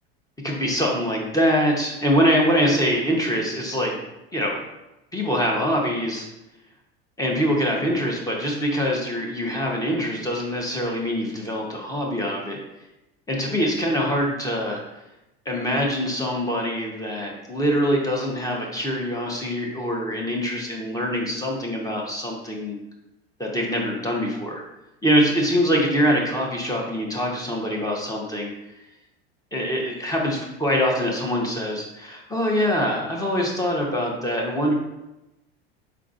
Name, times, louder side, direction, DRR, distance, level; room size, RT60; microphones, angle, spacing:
voice 1, 0.4-4.0 4.3-4.6 5.1-6.3 7.2-12.6 13.3-14.8 15.4-22.8 23.4-24.6 25.0-28.5 29.5-34.7, equal, 10° left, -1 dB, 1.0 m, -24 dB
4.6 x 3.7 x 2.5 m, 0.93 s
hypercardioid pair, 95°, 31 cm